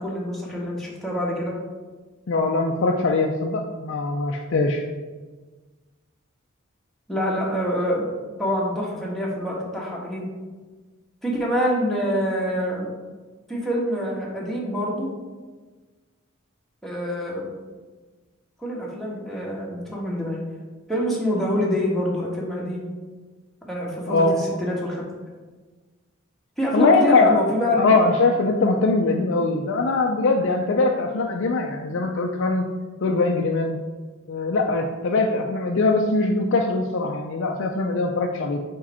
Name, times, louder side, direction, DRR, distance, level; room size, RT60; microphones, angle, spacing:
voice 1, 0.0-1.6 7.1-8.1 8.4-10.3 11.2-12.9 13.5-15.1 16.8-17.5 18.6-20.4 20.9-22.9 23.7-25.0 26.6-27.9, equal, ahead, -5 dB, 1.3 m, -26 dB
voice 2, 2.3-4.8 24.1-24.3 26.7-27.4 27.8-32.7 33.0-33.8 34.3-38.6, left 3 dB, 65° left, 2 dB, 0.5 m, -21 dB
4.9 x 4.5 x 4.2 m, 1.3 s
head